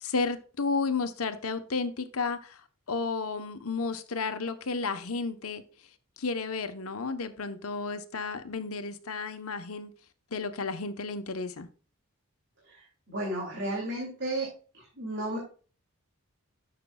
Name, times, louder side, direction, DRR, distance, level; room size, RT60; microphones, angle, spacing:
voice 1, 0.0-2.6 2.9-5.6 6.2-9.9 10.3-11.7, left 4 dB, 75° left, 0.9 m, -32 dB
voice 2, 12.6-14.5 14.7-15.4, right 1 dB, 50° right, 2.5 m, -33 dB
11.0 x 6.7 x 2.3 m
head